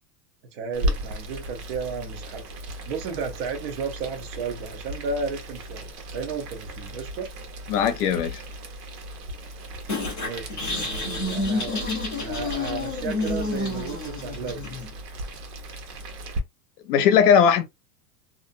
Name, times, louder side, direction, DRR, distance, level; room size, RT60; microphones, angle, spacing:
voice 1, 0.5-2.4 2.8-7.3 10.2-11.8 12.2-14.6, right 5 dB, 35° right, 0.5 m, -33 dB
Boiling, 0.7-16.4, right 1 dB, 65° right, 1.0 m, -36 dB
voice 2, 7.7-8.4 16.9-17.6, left 7 dB, 65° left, 0.7 m, -18 dB
sound 1, 9.9-14.9, left 2 dB, 20° left, 0.3 m, -29 dB
2.5 x 2.1 x 2.4 m
supercardioid pair, 170°, 49 cm